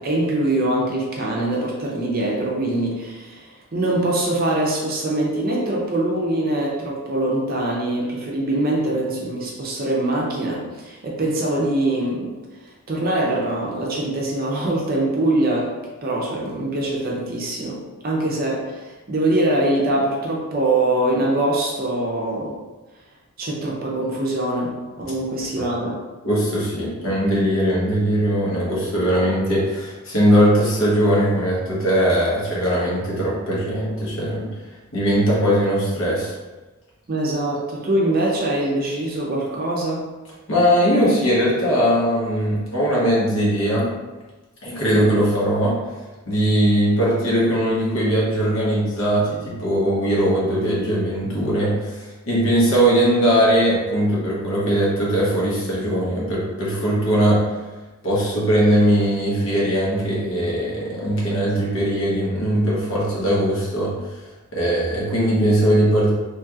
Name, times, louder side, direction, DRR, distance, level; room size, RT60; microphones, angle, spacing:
voice 1, 0.0-12.4 12.9-15.7 16.0-22.6 23.4-26.0 37.1-40.1 44.8-45.0, right 1 dB, 40° right, -3 dB, 0.5 m, -23 dB
voice 2, 26.2-34.5 34.9-36.3 40.5-43.9 44.6-45.8 46.3-57.4 58.0-64.2 64.5-66.1, equal, 65° left, -6 dB, 1.0 m, -20 dB
3.1 x 2.8 x 2.4 m, 1.2 s
head